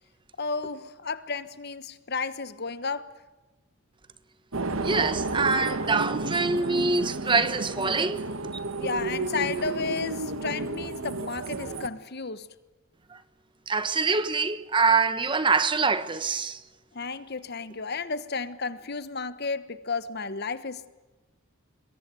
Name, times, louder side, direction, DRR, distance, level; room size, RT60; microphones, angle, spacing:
voice 1, 0.4-3.1 8.8-12.5 16.9-20.9, left 4 dB, 50° left, 1.2 m, -32 dB
sound 1, 4.5-11.9, right 2 dB, 75° right, 1.5 m, -32 dB
voice 2, 4.8-8.2 13.7-16.6, right 4 dB, 25° right, 1.1 m, -25 dB
24.0 x 22.0 x 9.2 m
head